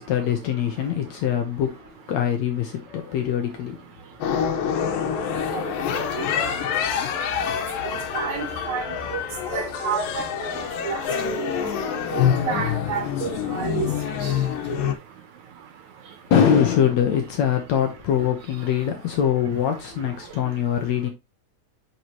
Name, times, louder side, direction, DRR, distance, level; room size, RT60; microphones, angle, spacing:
voice 1, 0.0-3.9 16.3-21.1, left 8 dB, 65° left, 1.9 m, -23 dB
sound 1, 4.2-15.0, left 8 dB, 85° left, 2.8 m, -26 dB
voice 2, 8.1-8.8 9.1-9.2 9.5-10.2 10.8-11.0 11.3-11.5 12.1-13.9 14.2-14.3 14.7-14.8, right 7 dB, 65° right, 2.1 m, -29 dB
9.3 x 4.8 x 3.0 m
omnidirectional pair, 3.9 m